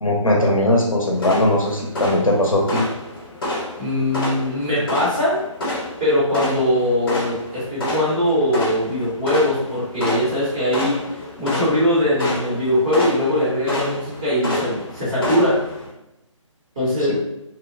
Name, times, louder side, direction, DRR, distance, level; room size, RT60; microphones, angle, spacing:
voice 1, 0.0-2.8, left 1 dB, 85° left, -1 dB, 0.7 m, -19 dB
sound 1, 1.1-15.9, left 1 dB, 45° left, 0.8 m, -29 dB
voice 2, 3.8-5.4 6.0-11.0 11.4-15.6 16.8-17.1, left 1 dB, 10° right, -11 dB, 0.4 m, -21 dB
2.8 x 2.1 x 2.5 m, 0.88 s
figure-of-eight pair, 145°, 17 cm